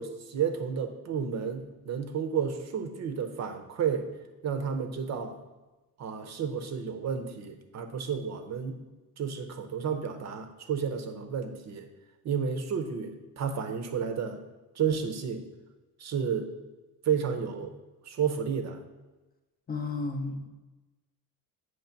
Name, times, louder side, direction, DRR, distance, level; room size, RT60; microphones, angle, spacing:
voice 1, 0.0-4.1 4.4-5.4 6.0-8.8 9.2-11.9 12.2-14.4 14.8-15.4 16.0-16.5 17.0-17.7 18.1-18.8, right 7 dB, 45° right, 7 dB, 0.6 m, -31 dB
voice 2, 19.7-20.5, left 3 dB, 25° left, 4 dB, 0.5 m, -32 dB
7.8 x 3.2 x 5.7 m, 1.1 s
cardioid pair, 165°, 38 cm